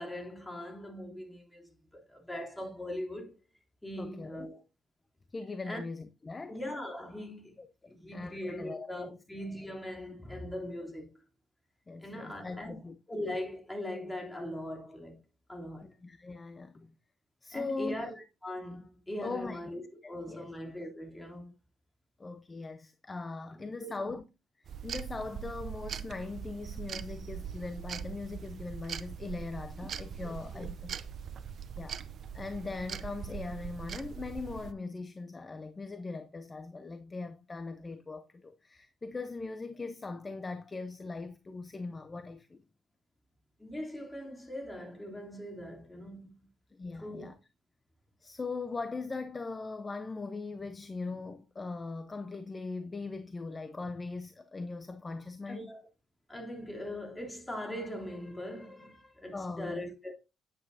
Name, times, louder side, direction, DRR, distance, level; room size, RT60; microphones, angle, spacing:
voice 1, 0.0-3.3 3.8-4.6 5.6-5.8 6.5-7.6 7.9-11.2 12.0-12.8 13.1-15.2 15.5-15.9 17.5-21.5 23.8-24.1 30.2-30.7 43.6-46.4 47.0-47.3 55.5-55.8 56.3-60.1, left 1 dB, 10° left, 3.2 m, -41 dB
voice 2, 4.0-4.5 5.3-6.6 7.6-9.2 11.9-13.0 15.8-16.9 17.4-18.1 19.2-19.6 20.0-20.5 22.2-24.2 24.6-31.0 31.8-32.0 32.3-42.6 46.7-47.4 48.2-55.7 59.3-59.8, left 3 dB, 25° left, 0.7 m, -40 dB
sound 1, 24.6-34.7, right 8 dB, 60° right, 0.6 m, -41 dB
9.8 x 8.7 x 2.7 m
cardioid pair, 90°, 0 cm